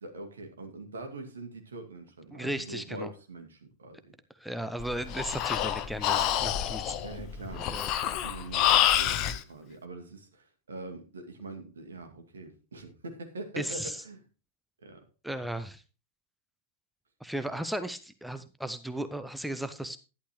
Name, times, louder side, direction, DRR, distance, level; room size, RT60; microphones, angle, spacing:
voice 1, 0.0-4.1 7.0-14.2 14.8-15.0, right 2 dB, 70° right, 5 dB, 2.2 m, -43 dB
voice 2, 2.3-3.1 4.4-6.9 7.6-7.9 13.6-14.0 15.2-15.8 17.2-20.0, right 1 dB, ahead, 10 dB, 0.8 m, -35 dB
Breathing, 4.8-9.4, left 11 dB, 40° left, 0.8 m, -27 dB
11.5 x 11.0 x 3.1 m, 0.32 s
figure-of-eight pair, 90°, 0 cm